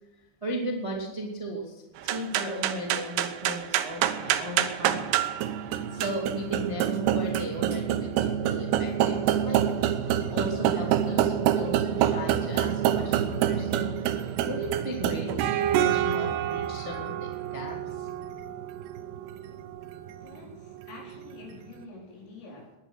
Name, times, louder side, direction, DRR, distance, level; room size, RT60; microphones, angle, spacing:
voice 1, 0.4-5.1 5.6-9.6 10.0-13.9 14.2-18.1, equal, 40° right, -1 dB, 0.4 m, -36 dB
sound 1, 2.0-21.5, right 10 dB, 85° right, 2.3 m, -27 dB
voice 2, 20.1-22.8, left 3 dB, 70° left, -3 dB, 7.1 m, -47 dB
20.0 x 10.5 x 6.4 m, 1.0 s
omnidirectional pair, 6.0 m